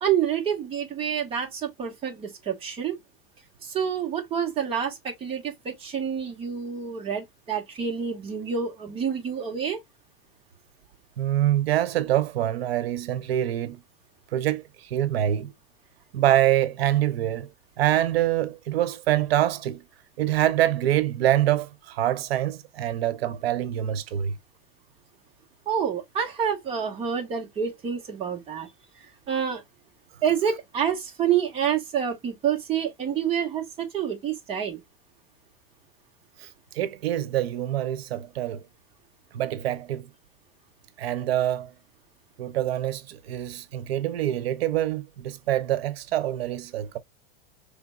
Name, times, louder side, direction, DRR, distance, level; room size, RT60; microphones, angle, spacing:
voice 1, 0.0-3.0 3.6-9.8 25.6-28.7 29.0-29.6 30.2-34.8, right 8 dB, 20° right, 1.5 m, -28 dB
voice 2, 11.2-13.8 14.3-15.5 16.1-17.5 17.8-19.8 20.2-24.3 36.4-36.5 36.7-38.6 39.3-40.1 41.0-41.7 42.4-47.0, right 12 dB, 85° right, 0.8 m, -25 dB
4.9 x 3.5 x 2.4 m
supercardioid pair, 165°, 30 cm